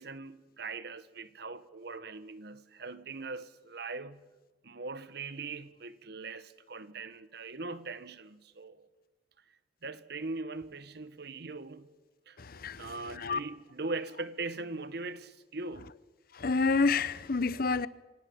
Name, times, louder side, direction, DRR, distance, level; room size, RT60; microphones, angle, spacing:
voice 1, 0.0-4.3 4.6-8.9 9.8-11.9 12.3-12.4 12.8-15.9, right 3 dB, 60° right, 1.3 m, -41 dB
voice 2, 12.4-12.8 13.2-13.4 16.4-17.9, left 4 dB, 55° left, 0.8 m, -28 dB
26.5 x 17.5 x 8.6 m
head